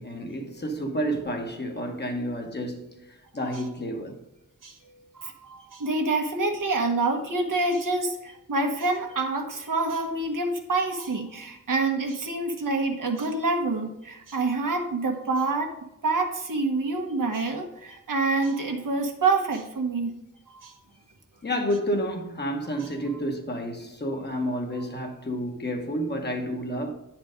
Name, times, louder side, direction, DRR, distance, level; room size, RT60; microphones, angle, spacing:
voice 1, 0.0-4.2 21.4-26.9, equal, 35° left, 1.0 m, -30 dB
voice 2, 4.6-15.7 16.0-20.1 20.5-20.8, right 3 dB, 85° right, 1.3 m, -27 dB
9.3 x 4.4 x 5.0 m
wide cardioid pair, 120°, 32 cm